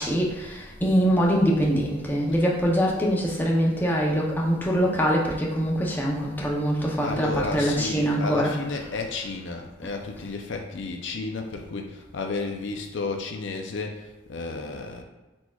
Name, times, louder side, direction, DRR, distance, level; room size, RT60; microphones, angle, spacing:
voice 1, 0.0-8.9 10.2-10.3, equal, 10° left, -3 dB, 0.6 m, -24 dB
voice 2, 7.0-15.0, left 3 dB, 60° left, 3 dB, 0.5 m, -32 dB
4.3 x 4.3 x 2.3 m, 1.1 s
head